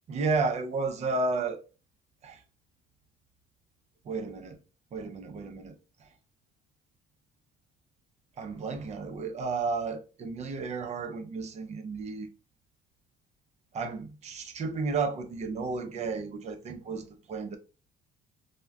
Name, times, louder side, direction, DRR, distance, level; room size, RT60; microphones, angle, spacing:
voice 1, 0.1-1.6 2.2-2.4 4.0-4.6 4.9-5.7 8.4-12.3 13.7-17.6, right 4 dB, 40° right, 0.6 m, -32 dB
2.3 x 2.1 x 3.4 m
cardioid pair, 110°, 17 cm